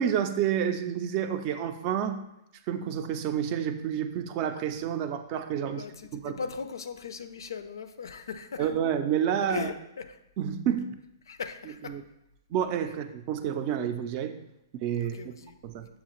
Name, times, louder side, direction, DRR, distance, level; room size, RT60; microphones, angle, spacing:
voice 1, 0.0-2.2 2.7-5.8 6.1-6.4 8.6-9.7 10.4-11.0 11.8-12.0 12.5-14.3 14.7-15.2 15.6-15.9, right 9 dB, 40° right, 9 dB, 0.4 m, -29 dB
voice 2, 5.6-8.7 9.5-10.2 11.3-11.9 15.0-15.6, left 5 dB, 80° left, 9 dB, 0.4 m, -38 dB
6.8 x 2.4 x 3.0 m, 0.86 s
hypercardioid pair, 125°, 2 cm